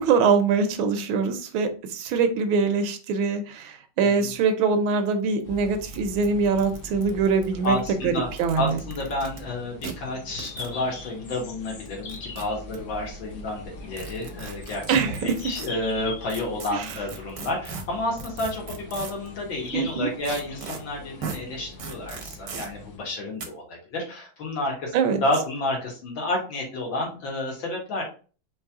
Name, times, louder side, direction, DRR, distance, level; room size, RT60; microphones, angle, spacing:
voice 1, 0.0-7.8 8.0-8.1 8.4-8.8 14.9-15.4 16.7-16.9 19.7-20.1 24.9-25.2, right 5 dB, 80° right, 1.5 m, -23 dB
voice 2, 4.0-4.3 7.6-8.3 8.6-14.8 15.2-28.0, left 2 dB, 75° left, 2.4 m, -30 dB
sound 1, 5.1-5.2 5.4-5.5 5.9-6.0 6.2-7.7 8.3-9.4 9.8-9.9 10.4-10.7 11.9-12.8 13.9-15.7 16.3-19.3 20.2-20.8 21.2-21.4 21.8-22.7 23.4-23.5, right 5 dB, 60° right, 1.0 m, -38 dB
sound 2, 5.4-23.0, left 2 dB, 55° left, 1.2 m, -42 dB
4.7 x 3.1 x 3.6 m
omnidirectional pair, 2.2 m